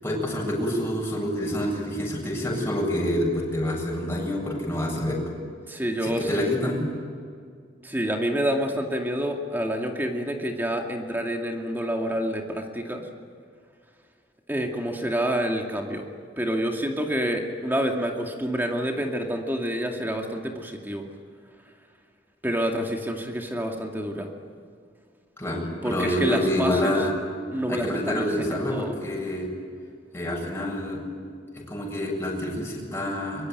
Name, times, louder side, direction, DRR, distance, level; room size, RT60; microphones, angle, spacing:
voice 1, 0.0-5.2 6.0-6.9 25.4-27.1 27.7-29.5 30.1-31.0 31.7-33.5, left 1 dB, 15° left, -3 dB, 7.7 m, -27 dB
voice 2, 5.7-6.3 7.8-13.1 14.5-16.1 16.4-21.0 22.4-24.3 25.8-26.9 27.5-28.9, equal, 10° right, 2 dB, 2.3 m, -28 dB
24.0 x 23.0 x 9.5 m, 2.2 s
head